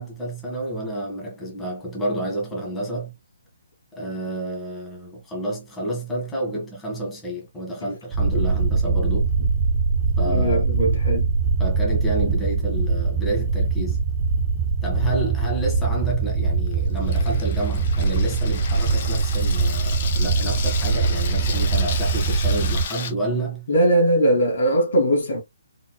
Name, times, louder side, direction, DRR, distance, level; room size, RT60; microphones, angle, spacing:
voice 1, 0.0-3.1 3.9-9.3 10.2-10.9 11.6-14.0 14.8-23.7, right 1 dB, 10° left, 1.9 m, -29 dB
sound 1, 8.1-22.8, right 4 dB, 30° right, 0.9 m, -22 dB
voice 2, 10.3-11.3 23.7-25.4, right 1 dB, 60° left, 2.4 m, -20 dB
Water tap faucet / Sink (filling or washing), 16.0-23.1, left 7 dB, 45° left, 1.2 m, -34 dB
4.3 x 4.0 x 2.3 m
hypercardioid pair, 150°, 0 cm